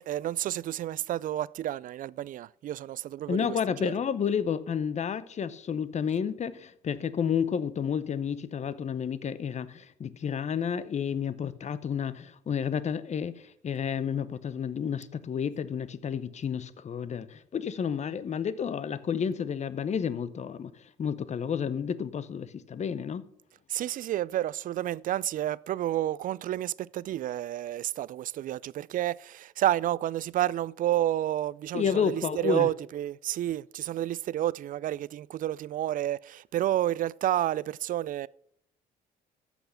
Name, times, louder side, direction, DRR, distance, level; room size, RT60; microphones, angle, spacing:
voice 1, 0.0-3.9 23.7-38.3, right 13 dB, 55° right, 0.4 m, -30 dB
voice 2, 3.3-23.3 31.7-32.7, left 7 dB, 40° left, 0.8 m, -31 dB
14.0 x 5.9 x 5.7 m
supercardioid pair, 75°, 17 cm